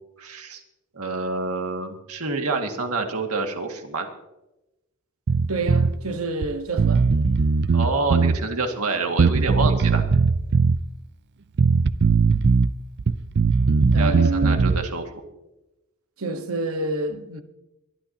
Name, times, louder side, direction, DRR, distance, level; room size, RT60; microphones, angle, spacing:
voice 1, 0.2-0.6 0.9-4.1 7.7-10.0 13.9-15.0, right 3 dB, 85° right, 2.1 m, -27 dB
Bass guitar, 5.3-5.9 6.4-6.5 6.8-8.4 9.2-10.8 11.6-12.7 13.0-14.9, right 4 dB, 50° right, 0.5 m, -19 dB
voice 2, 5.5-7.1 13.9-14.6 16.2-17.4, right 2 dB, 70° right, 1.4 m, -28 dB
23.0 x 12.5 x 2.9 m
head